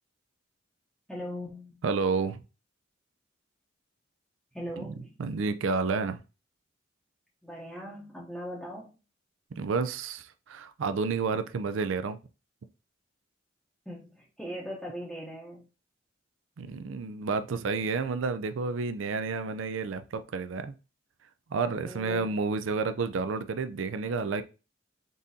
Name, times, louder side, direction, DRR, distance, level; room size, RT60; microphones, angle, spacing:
voice 1, 1.1-1.8 4.5-5.2 7.4-8.9 13.9-15.7 21.8-22.4, equal, 5° left, 0.7 m, -40 dB
voice 2, 1.8-2.4 4.8-4.9 5.2-6.2 9.6-12.2 16.6-20.7 21.5-24.4, right 4 dB, 90° right, 0.4 m, -30 dB
4.0 x 3.6 x 2.7 m
head